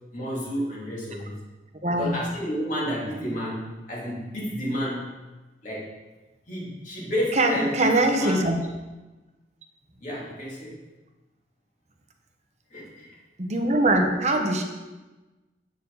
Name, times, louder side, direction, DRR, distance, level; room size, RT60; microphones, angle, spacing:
voice 1, 0.1-1.4 1.9-5.1 5.6-5.9 6.5-8.5 10.0-10.7 12.7-13.1, equal, 45° left, -5 dB, 2.7 m, -30 dB
voice 2, 1.8-2.2 7.3-8.6 13.4-14.6, right 2 dB, 35° right, 3 dB, 1.0 m, -22 dB
9.0 x 6.9 x 4.0 m, 1.2 s
head